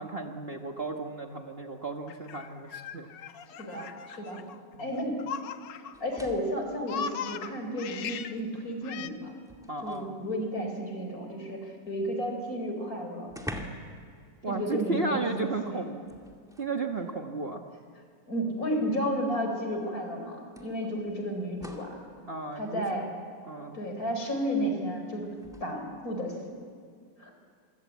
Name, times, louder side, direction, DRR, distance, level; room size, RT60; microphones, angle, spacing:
voice 1, 0.0-3.1 4.7-4.9 9.7-10.1 14.4-15.9 16.6-17.6 22.3-23.0 23.4-23.8, right 3 dB, 35° right, 3 dB, 1.4 m, -34 dB
Laughter, 2.1-6.2 6.5-8.4 8.8-9.1, left 7 dB, 90° left, 1.6 m, -39 dB
voice 2, 3.5-4.4 4.8-5.2 6.0-9.3 9.8-13.3 14.5-15.9 18.3-22.0 22.5-23.1 23.7-25.3 25.6-26.6 27.2-27.3, equal, 50° left, 4 dB, 4.8 m, -32 dB
sound 1, 5.9-6.7 8.0-8.1 8.6-10.2 12.3-12.4 12.6-12.7 13.3-14.0 14.3-14.5 16.0-16.8 17.9-18.0 19.6-19.7 20.5-22.0 25.4-25.6, equal, ahead, 2.2 m, -44 dB
26.0 x 24.5 x 8.3 m, 2.2 s
omnidirectional pair, 1.9 m